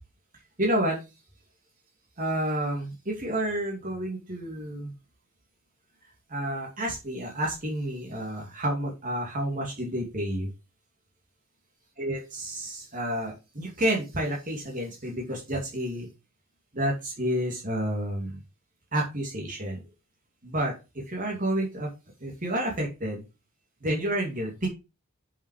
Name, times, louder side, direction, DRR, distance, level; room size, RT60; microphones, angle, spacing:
voice 1, 0.6-1.1 2.2-4.9 6.3-10.5 12.0-16.1 16.7-18.4 18.9-19.8 20.4-21.9 22.2-23.2 23.8-24.7, right 1 dB, 40° right, -1 dB, 2.4 m, -30 dB
7.1 x 5.6 x 4.8 m, 0.27 s
head